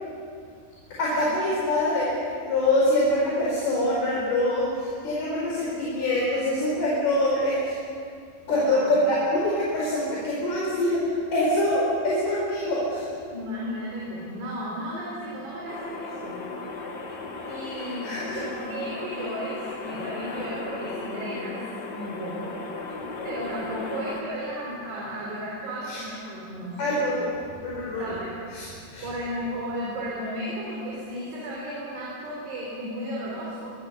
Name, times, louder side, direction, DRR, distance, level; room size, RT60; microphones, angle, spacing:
voice 1, 1.0-7.8 8.5-13.1 18.0-18.4 25.8-26.0 26.8-27.2 27.6-28.2 28.5-29.1, left 1 dB, 65° left, -5 dB, 6.7 m, -25 dB
voice 2, 8.5-8.9 13.3-16.4 17.4-21.6 21.9-22.6 23.2-27.1 28.0-28.3 29.0-33.7, equal, 80° right, -4 dB, 6.4 m, -34 dB
sound 1, 15.7-24.2, left 3 dB, 50° left, 1.3 m, -36 dB
24.5 x 24.5 x 7.1 m, 2.3 s
omnidirectional pair, 4.8 m